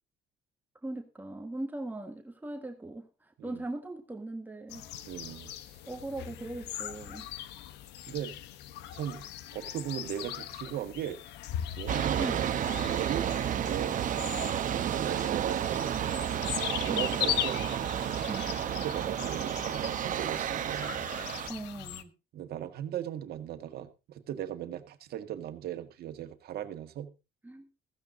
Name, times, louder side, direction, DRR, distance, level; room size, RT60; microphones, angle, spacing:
voice 1, 0.8-4.9 5.9-7.3 12.2-12.4 16.9-17.1 18.3-18.5 21.5-22.1 27.4-27.7, right 2 dB, 10° right, 1.6 m, -39 dB
sound 1, 4.7-22.0, left 11 dB, 85° left, 1.1 m, -39 dB
voice 2, 5.1-5.8 8.1-8.4 8.9-9.3 9.5-11.2 11.8-12.4 12.7-13.4 13.7-14.2 14.7-16.3 16.9-17.7 18.8-21.0 22.3-27.1, right 10 dB, 65° right, 1.9 m, -38 dB
sound 2, 11.9-21.5, right 9 dB, 50° right, 1.0 m, -31 dB
15.5 x 15.0 x 2.7 m
cardioid pair, 110°, 17 cm